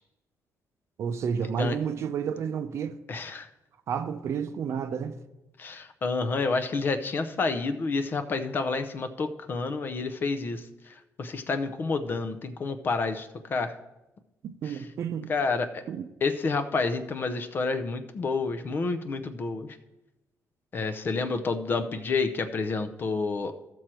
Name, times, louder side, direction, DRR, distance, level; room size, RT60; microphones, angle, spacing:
voice 1, 1.0-3.0 3.9-5.2 14.4-15.3 15.9-16.1, right 7 dB, 50° right, 0.6 m, -31 dB
voice 2, 3.1-3.5 5.6-13.7 14.7-14.8 15.3-15.8 16.2-19.8 20.7-23.5, left 4 dB, 35° left, 0.6 m, -29 dB
14.5 x 6.2 x 4.4 m
cardioid pair, 165°, 6 cm